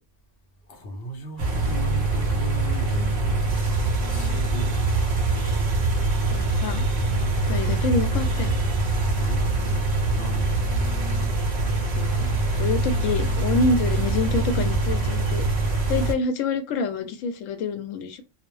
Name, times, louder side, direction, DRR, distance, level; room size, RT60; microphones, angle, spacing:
voice 1, 0.7-4.9 9.2-9.4 10.1-10.7, equal, 60° left, 0.7 m, -37 dB
sound 1, 1.4-16.1, right 2 dB, 55° right, 0.5 m, -24 dB
voice 2, 6.3-6.8 7.5-8.6 12.0-12.3 12.6-15.5 15.9-18.2, left 3 dB, 90° left, 1.0 m, -27 dB
2.3 x 2.0 x 3.0 m
omnidirectional pair, 1.3 m